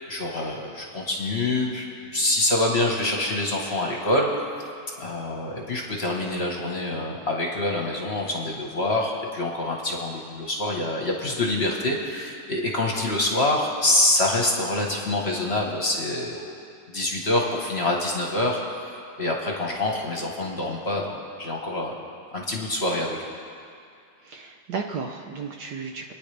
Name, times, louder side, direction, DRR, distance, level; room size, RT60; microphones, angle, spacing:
voice 1, 0.0-4.3 5.0-16.5 16.9-21.9 22.3-23.2, left 2 dB, 35° left, -1 dB, 1.4 m, -26 dB
voice 2, 24.2-26.1, right 5 dB, 65° right, 3 dB, 1.2 m, -34 dB
27.5 x 9.7 x 3.4 m, 2.3 s
omnidirectional pair, 2.2 m